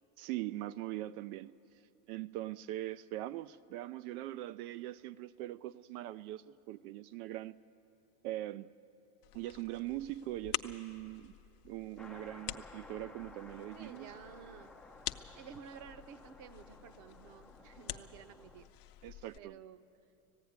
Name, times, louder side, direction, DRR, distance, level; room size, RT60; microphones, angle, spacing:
voice 1, 0.2-1.6 2.1-7.6 8.2-8.7 9.3-11.3 11.6-14.1 19.0-19.6, right 15 dB, 85° right, 13 dB, 0.6 m, -41 dB
sound 1, 9.2-19.4, left 15 dB, 50° left, 0.7 m, -47 dB
sound 2, 12.0-18.7, left 2 dB, ahead, 0.4 m, -55 dB
voice 2, 13.7-14.7 15.3-18.7 19.4-19.9, right 8 dB, 45° right, 11 dB, 0.8 m, -52 dB
19.0 x 15.5 x 9.4 m, 2.8 s
cardioid pair, 150°, 43 cm